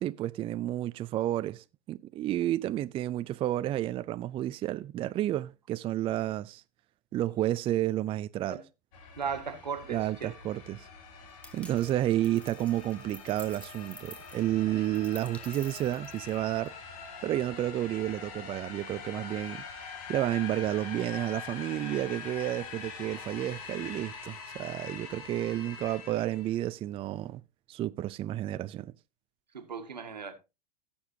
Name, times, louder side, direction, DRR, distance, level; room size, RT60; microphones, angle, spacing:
voice 1, 0.0-6.6 7.1-8.6 9.9-10.9 11.5-16.7 17.2-19.6 20.1-27.4 27.7-28.9, right 13 dB, 25° right, 0.4 m, -31 dB
sound 1, 8.9-26.6, left 5 dB, 55° left, 2.4 m, -44 dB
voice 2, 9.2-10.3 29.5-30.3, right 6 dB, 85° right, 1.7 m, -36 dB
sound 2, 11.4-16.7, left 1 dB, 5° left, 1.2 m, -51 dB
17.0 x 7.0 x 2.8 m
hypercardioid pair, 95°, 21 cm